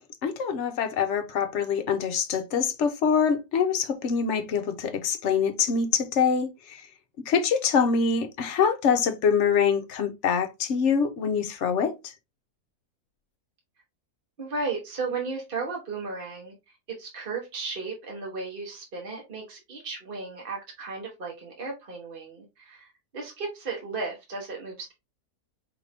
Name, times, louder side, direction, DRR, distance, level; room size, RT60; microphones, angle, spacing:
voice 1, 0.0-6.9 7.3-12.1, left 6 dB, 60° left, 0.9 m, -25 dB
voice 2, 14.4-16.5 16.9-24.9, right 4 dB, 40° right, 1.1 m, -35 dB
5.0 x 2.6 x 3.3 m
omnidirectional pair, 1.6 m